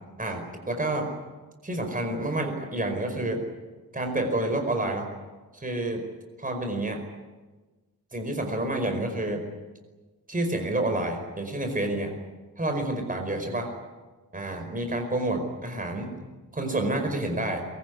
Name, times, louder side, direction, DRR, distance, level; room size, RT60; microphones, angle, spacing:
voice 1, 0.2-1.1 1.6-3.4 3.9-5.1 5.5-6.0 6.4-7.0 8.1-9.4 10.3-12.1 12.6-13.7 14.3-16.1 16.5-17.6, right 1 dB, 20° right, 5 dB, 5.0 m, -29 dB
23.5 x 22.5 x 9.5 m, 1.3 s
wide cardioid pair, 125°, 37 cm